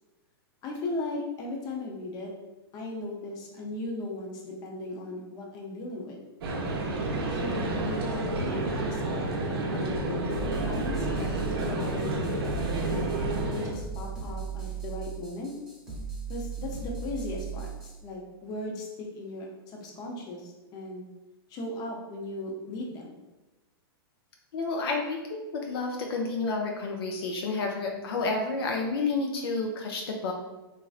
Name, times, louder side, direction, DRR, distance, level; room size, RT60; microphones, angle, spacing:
voice 1, 0.6-2.3 2.7-6.2 7.4-12.3 12.8-13.2 13.5-15.5 16.3-21.1 21.5-23.1, left 2 dB, 30° left, -1 dB, 0.6 m, -37 dB
sound 1, 6.4-13.7, right 2 dB, 75° right, 0.6 m, -30 dB
sound 2, 10.3-18.0, right 6 dB, 5° right, 0.9 m, -37 dB
voice 2, 24.5-30.3, left 3 dB, 70° left, 1 dB, 0.5 m, -30 dB
3.0 x 2.5 x 2.4 m, 1.1 s
hypercardioid pair, 130°, 13 cm